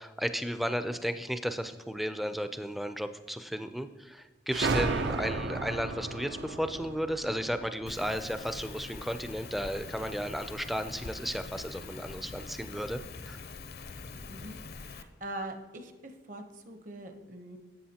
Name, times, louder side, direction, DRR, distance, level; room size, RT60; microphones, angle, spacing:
voice 1, 0.0-13.4, equal, ahead, 9 dB, 0.3 m, -34 dB
sound 1, 4.5-9.0, right 3 dB, 75° right, 0.5 m, -34 dB
Rain, 7.9-15.0, left 4 dB, 60° left, 0.5 m, -44 dB
voice 2, 14.8-17.6, right 1 dB, 45° right, 6 dB, 0.8 m, -42 dB
13.0 x 8.0 x 2.8 m, 1.2 s
head